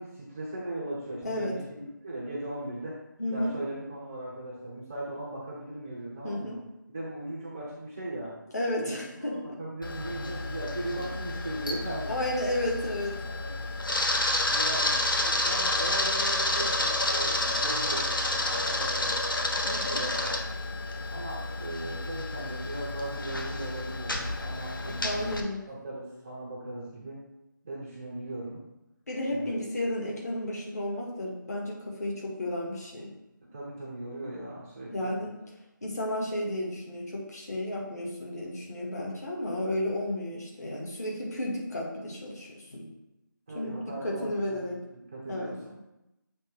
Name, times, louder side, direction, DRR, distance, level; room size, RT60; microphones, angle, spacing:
voice 1, 0.0-3.0 3.3-6.5 6.9-8.3 8.8-8.9 9.3-12.1 13.2-13.6 14.0-20.4 21.1-25.3 25.7-27.2 27.6-28.6 29.3-29.5 33.5-35.1 43.5-44.7 45.1-45.7, right 1 dB, 10° right, -6 dB, 0.4 m, -38 dB
voice 2, 1.2-1.6 3.2-3.5 6.2-6.6 8.5-9.6 12.1-13.2 19.6-20.0 24.9-25.7 29.1-33.1 34.9-35.3 35.8-42.9 43.5-44.8 45.3-45.6, left 1 dB, 50° left, -3 dB, 2.0 m, -32 dB
Camera, 9.8-25.4, left 2 dB, 80° left, 1.1 m, -30 dB
7.5 x 3.1 x 4.7 m, 0.94 s
figure-of-eight pair, 170°, 11 cm